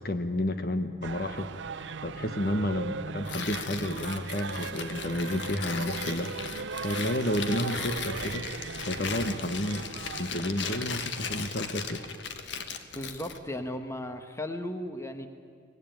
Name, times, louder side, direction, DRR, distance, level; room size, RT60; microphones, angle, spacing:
voice 1, 0.0-1.5 2.0-6.3 6.8-8.5 8.8-9.9 10.2-12.0, left 1 dB, 50° left, 9 dB, 1.2 m, -31 dB
sound 1, 1.0-12.5 12.7-12.8, right 5 dB, 70° right, 0.6 m, -39 dB
Tearing, 3.2-13.4, left 5 dB, 70° left, 1.5 m, -37 dB
voice 2, 12.9-15.3, left 1 dB, 15° left, 7 dB, 1.3 m, -36 dB
23.5 x 20.0 x 9.2 m, 2.2 s
head